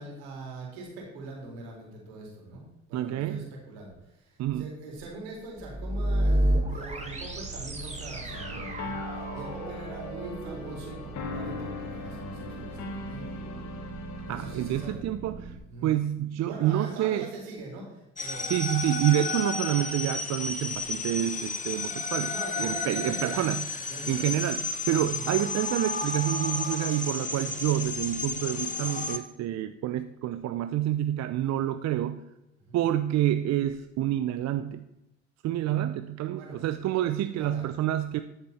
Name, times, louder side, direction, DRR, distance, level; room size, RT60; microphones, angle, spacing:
voice 1, 0.0-13.3 14.3-15.0 15.7-15.9 16.4-18.5 20.5-20.9 22.2-23.5 23.9-24.4 25.1-25.2 31.3-31.6 32.6-32.8 35.6-35.8 36.3-36.6 37.4-37.7, right 2 dB, 80° right, -1 dB, 3.8 m, -42 dB
voice 2, 2.9-3.5 4.4-4.7 14.3-15.6 15.8-17.3 18.5-22.3 22.6-23.6 24.0-32.2 32.7-34.8 35.4-38.2, right 12 dB, 55° right, 10 dB, 0.7 m, -28 dB
sound 1, 5.6-15.6, right 1 dB, 20° right, 2.6 m, -33 dB
sound 2, 8.3-14.9, left 3 dB, 60° left, 1.8 m, -39 dB
sound 3, 18.2-29.2, left 4 dB, 25° left, 1.5 m, -32 dB
13.0 x 6.8 x 4.3 m, 0.91 s
hypercardioid pair, 60°, 32 cm